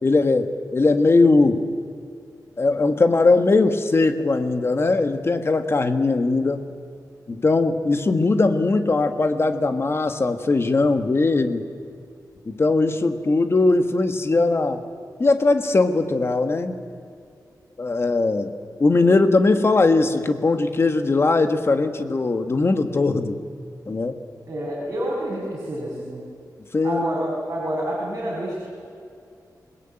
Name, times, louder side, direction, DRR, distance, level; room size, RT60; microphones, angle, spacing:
voice 1, 0.0-1.6 2.6-6.6 7.3-11.6 12.4-14.8 15.2-16.8 17.8-18.5 18.8-23.4 23.9-24.2 26.7-27.0, left 3 dB, 35° left, 8 dB, 1.7 m, -20 dB
voice 2, 24.5-26.2 26.8-28.7, right 1 dB, 35° right, -5 dB, 6.8 m, -28 dB
27.5 x 20.0 x 9.1 m, 2.4 s
wide cardioid pair, 145°, 7 cm